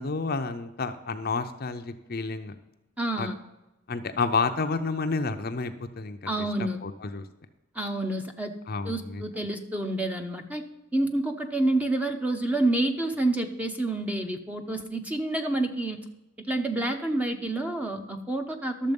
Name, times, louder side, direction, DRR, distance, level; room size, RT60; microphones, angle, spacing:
voice 1, 0.0-2.6 3.2-3.3 3.9-6.3 6.6-7.3 8.7-9.2, left 4 dB, 45° left, 8 dB, 0.6 m, -30 dB
voice 2, 3.0-3.4 6.3-6.8 7.7-8.5 8.8-10.6 10.9-16.0 16.4-18.9, right 2 dB, 5° right, 6 dB, 0.7 m, -28 dB
12.0 x 7.3 x 5.3 m, 0.98 s
head